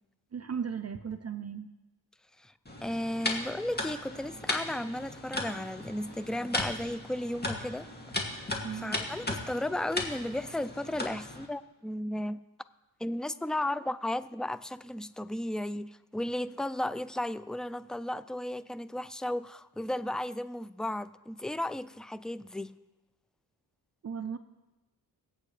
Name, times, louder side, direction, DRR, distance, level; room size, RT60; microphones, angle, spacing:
voice 1, 0.3-1.7 8.6-9.0 24.0-24.4, right 7 dB, 40° right, 0.6 m, -36 dB
sound 1, 2.7-11.5, left 2 dB, 25° left, 2.3 m, -37 dB
voice 2, 2.8-7.9 8.3-12.4 13.0-22.7, left 1 dB, ahead, 0.4 m, -34 dB
20.5 x 8.5 x 3.3 m
cardioid pair, 55°, 41 cm